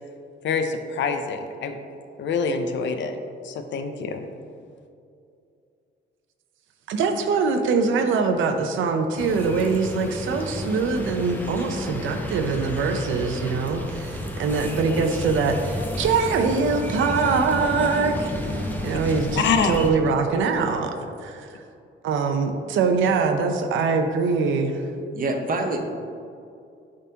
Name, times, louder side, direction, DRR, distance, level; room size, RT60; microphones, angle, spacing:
voice 1, 0.4-1.8 2.2-3.2 3.4-4.2 19.4-19.7, left 5 dB, 70° left, 6 dB, 0.6 m, -25 dB
voice 2, 6.9-18.5 18.8-20.9 21.2-21.5 22.0-24.8, right 4 dB, 90° right, 5 dB, 0.6 m, -23 dB
sound 1, 9.2-19.9, left 1 dB, 10° left, 0.8 m, -32 dB
voice 3, 25.1-25.8, right 2 dB, 45° right, 3 dB, 0.8 m, -25 dB
11.0 x 3.8 x 2.8 m, 2.4 s
cardioid pair, 100°, 20 cm